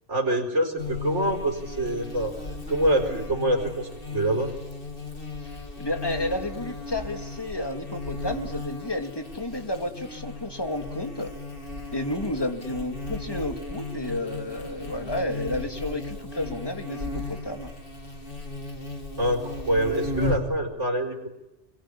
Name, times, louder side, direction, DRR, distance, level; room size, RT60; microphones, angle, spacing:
voice 1, 0.1-2.3 2.7-4.5 19.2-21.3, right 1 dB, 90° right, 1 dB, 5.0 m, -25 dB
Buzz, 0.8-20.6, left 2 dB, 50° left, 3.3 m, -35 dB
voice 2, 5.8-11.3 11.9-17.8, left 1 dB, 20° left, 5 dB, 2.5 m, -31 dB
27.0 x 22.0 x 9.9 m, 0.96 s
omnidirectional pair, 1.2 m